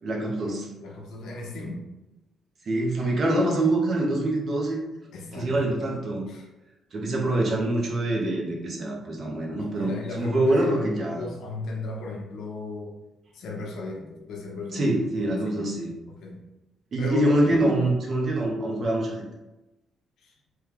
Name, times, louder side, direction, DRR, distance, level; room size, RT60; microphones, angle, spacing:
voice 1, 0.0-0.7 2.6-4.8 5.3-6.2 6.9-11.2 14.7-15.9 16.9-19.3, right 1 dB, 50° right, -1 dB, 0.9 m, -25 dB
voice 2, 0.8-1.8 5.1-5.9 6.3-6.5 9.6-12.9 13.3-15.6 16.1-16.4 17.0-17.8 20.2-20.3, left 3 dB, 80° left, 0 dB, 0.8 m, -36 dB
3.3 x 2.2 x 3.5 m, 0.99 s
cardioid pair, 90°, 0 cm